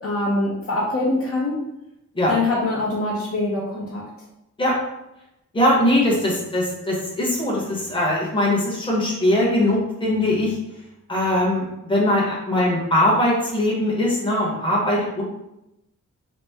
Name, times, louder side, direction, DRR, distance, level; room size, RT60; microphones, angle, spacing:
voice 1, 0.0-1.6 2.3-4.1, left 2 dB, 45° left, -5 dB, 0.8 m, -24 dB
voice 2, 5.5-10.6 11.1-15.2, left 1 dB, 15° left, -4 dB, 0.9 m, -21 dB
4.1 x 2.0 x 3.4 m, 0.88 s
wide cardioid pair, 165°, 31 cm